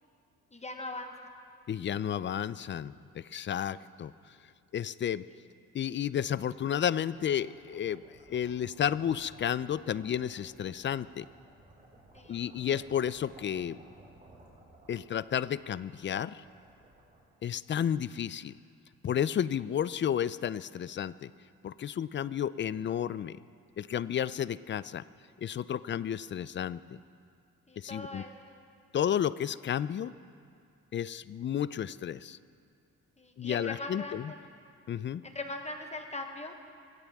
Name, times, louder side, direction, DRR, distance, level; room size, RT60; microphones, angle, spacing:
voice 1, 0.5-1.1 12.1-12.4 27.7-28.6 33.2-34.5 35.2-36.6, left 2 dB, 20° left, 4 dB, 1.2 m, -41 dB
voice 2, 1.7-4.4 4.7-5.3 5.7-11.3 12.3-13.8 14.9-16.4 17.4-18.5 19.0-21.3 21.6-23.4 23.8-25.0 25.4-26.8 27.8-28.2 28.9-30.1 30.9-32.4 33.4-34.3 34.9-35.2, left 9 dB, 40° left, 17 dB, 0.5 m, -32 dB
sound 1, 7.1-17.8, right 1 dB, 25° right, 5.1 m, -57 dB
24.5 x 16.0 x 3.6 m, 2.3 s
cardioid pair, 90°, 30 cm